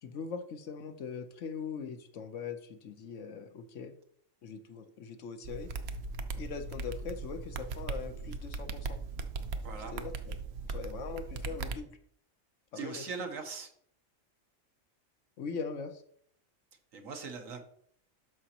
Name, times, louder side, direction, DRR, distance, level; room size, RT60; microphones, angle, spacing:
voice 1, 0.0-3.9 4.4-5.7 6.4-9.0 9.9-10.3 10.7-11.9 12.7-13.1 15.4-16.0, left 5 dB, 70° left, 8 dB, 1.1 m, -41 dB
sound 1, 5.4-11.8, right 4 dB, 60° right, 0.8 m, -39 dB
voice 2, 9.6-9.9 12.7-13.7 16.9-17.6, right 4 dB, 80° right, 5 dB, 1.5 m, -40 dB
12.5 x 5.0 x 2.9 m, 0.63 s
omnidirectional pair, 1.4 m